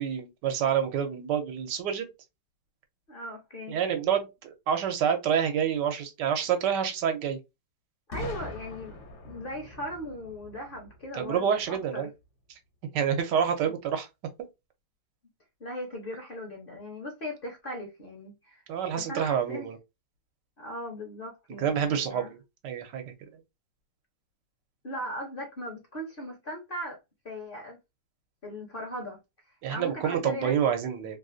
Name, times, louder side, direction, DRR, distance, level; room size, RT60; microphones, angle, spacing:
voice 1, 0.0-2.1 3.7-7.4 11.1-12.1 12.9-14.1 14.4-14.5 18.7-19.8 21.6-22.4 22.6-23.1 29.6-31.2, right 8 dB, 85° right, 1.4 m, -28 dB
voice 2, 3.1-3.8 8.1-12.1 13.6-13.7 15.6-18.6 18.9-19.7 20.6-22.3 24.8-27.0 27.2-27.8 28.4-29.2 29.5-30.6, equal, 45° left, 0.7 m, -38 dB
Boom, 8.1-11.9, left 1 dB, 75° left, 1.3 m, -43 dB
3.3 x 2.4 x 2.5 m
omnidirectional pair, 1.8 m